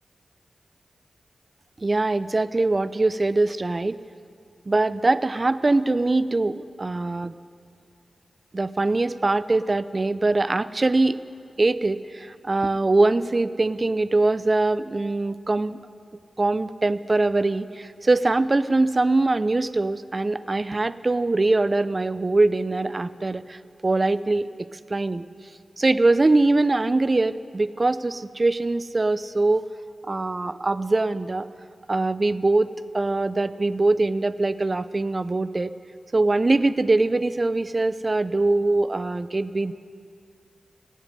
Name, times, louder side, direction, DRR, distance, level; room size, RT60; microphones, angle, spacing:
voice 1, 1.8-4.0 4.7-7.3 8.5-11.2 11.6-15.8 16.4-24.5 24.9-25.2 25.8-29.7 30.1-31.5 31.9-35.7 36.1-39.7, right 2 dB, 40° right, 14 dB, 0.5 m, -22 dB
15.5 x 8.2 x 9.9 m, 2.2 s
cardioid pair, 50°, 0 cm